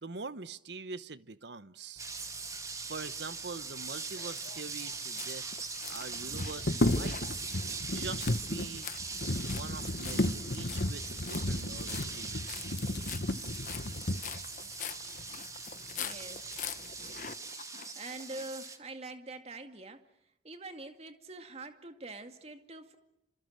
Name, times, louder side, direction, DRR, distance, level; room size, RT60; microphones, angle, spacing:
voice 1, 0.0-2.1 2.8-7.5 7.9-8.9 9.5-12.8, right 4 dB, 75° right, 1.0 m, -44 dB
sound 1, 2.0-18.8, right 4 dB, 20° right, 2.0 m, -41 dB
sound 2, 3.9-18.6, left 7 dB, 45° left, 1.2 m, -45 dB
sound 3, 4.7-4.8 4.9-5.0 6.1-14.5 15.2-15.3 15.7-16.4 16.7-17.3, left 1 dB, 65° left, 1.5 m, -34 dB
voice 2, 16.0-16.7 18.0-20.1 20.4-23.0, right 2 dB, 35° right, 2.2 m, -45 dB
28.0 x 27.0 x 6.6 m
head